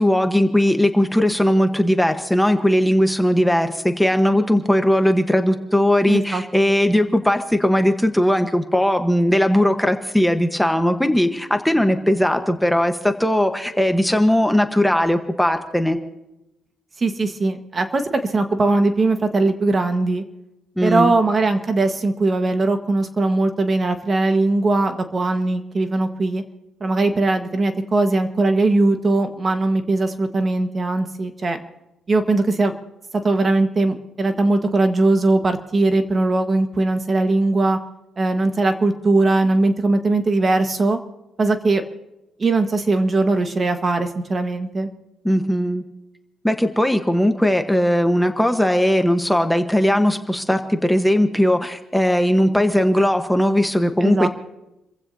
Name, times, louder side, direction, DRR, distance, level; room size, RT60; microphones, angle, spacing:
voice 1, 0.0-16.0 20.8-21.1 45.2-45.8 46.4-54.3, equal, 5° left, 6 dB, 1.2 m, -18 dB
voice 2, 6.1-6.4 17.0-20.2 20.8-26.4 26.8-31.6 32.1-32.7 33.2-37.8 38.2-41.0 41.4-41.8 42.4-44.9 54.0-54.3, right 2 dB, 35° right, 7 dB, 1.4 m, -20 dB
29.5 x 15.5 x 2.8 m, 0.93 s
cardioid pair, 90°, 0 cm